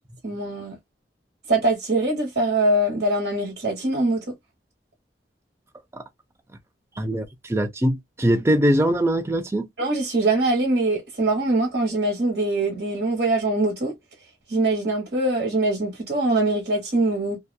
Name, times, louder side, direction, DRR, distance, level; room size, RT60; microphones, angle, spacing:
voice 1, 0.2-0.8 1.5-4.3 9.8-13.9 14.5-17.4, right 2 dB, 60° right, 1.2 m, -23 dB
voice 2, 7.0-9.7, equal, 15° right, 0.4 m, -22 dB
2.8 x 2.3 x 2.2 m
head